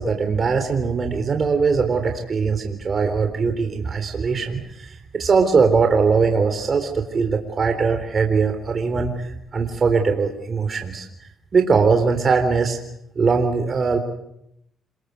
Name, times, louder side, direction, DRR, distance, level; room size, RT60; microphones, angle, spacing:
voice 1, 0.0-11.1 11.5-12.8 13.2-14.0, right 5 dB, 40° right, 5 dB, 3.8 m, -21 dB
28.0 x 21.5 x 8.3 m, 0.77 s
cardioid pair, 90°, 0 cm